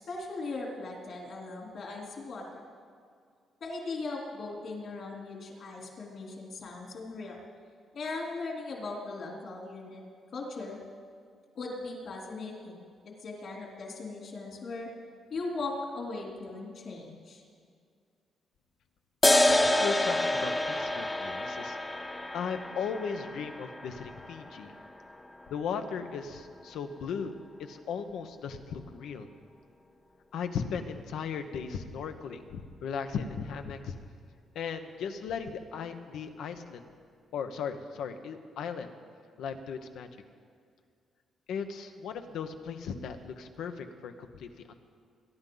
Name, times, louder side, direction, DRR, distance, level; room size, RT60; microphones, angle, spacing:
voice 1, 0.0-2.6 3.6-7.4 7.9-10.0 10.3-10.8 11.6-12.8 13.2-14.9 15.3-17.4, left 3 dB, 60° left, -1 dB, 3.4 m, -38 dB
sound 1, 19.2-26.2, left 1 dB, 15° left, 0.8 m, -29 dB
voice 2, 19.3-21.8 22.3-24.7 25.5-27.3 27.6-29.3 30.3-33.9 34.5-36.9 37.3-38.9 39.4-40.1 41.5-44.8, left 6 dB, 85° left, 7 dB, 1.0 m, -37 dB
23.0 x 11.0 x 4.0 m, 2.2 s
cardioid pair, 120°, 0 cm